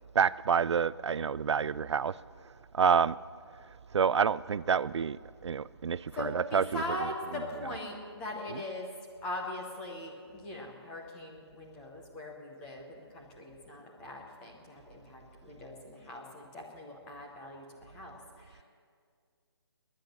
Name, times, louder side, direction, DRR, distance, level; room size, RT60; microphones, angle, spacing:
voice 1, 0.1-2.2 2.7-3.2 3.9-6.8, right 6 dB, 85° right, 18 dB, 0.4 m, -28 dB
voice 2, 6.1-8.9 9.2-18.6, left 1 dB, 5° left, 0 dB, 0.8 m, -41 dB
20.5 x 10.0 x 6.5 m, 2.1 s
hypercardioid pair, 175°, 14 cm